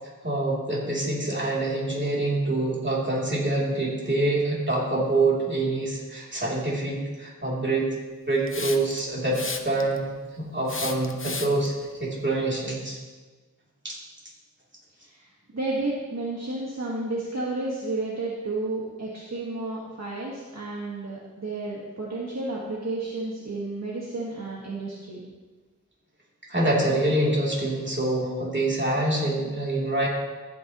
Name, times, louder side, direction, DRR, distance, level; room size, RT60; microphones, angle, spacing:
voice 1, 0.2-7.9 8.3-11.7 12.0-13.0 13.8-14.0 26.5-30.1, right 2 dB, 35° right, -5 dB, 3.0 m, -26 dB
Hiss, 8.5-9.0 9.3-10.0 10.7-11.7, left 3 dB, 40° left, 0.8 m, -33 dB
voice 2, 15.0-25.2, right 2 dB, 50° right, -5 dB, 1.5 m, -32 dB
14.0 x 8.7 x 3.0 m, 1.3 s
wide cardioid pair, 55°, 33 cm